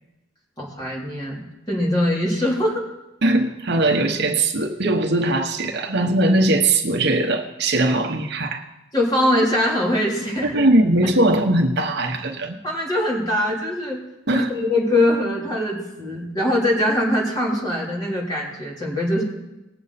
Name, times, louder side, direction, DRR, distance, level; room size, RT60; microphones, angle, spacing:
voice 1, 0.6-2.8 8.9-10.6 12.6-14.0 14.3-19.2, left 1 dB, 20° left, -5 dB, 3.5 m, -22 dB
voice 2, 3.2-8.6 10.5-12.6 14.3-14.5, right 2 dB, 60° right, 4 dB, 1.1 m, -20 dB
19.0 x 7.8 x 4.2 m, 0.97 s
head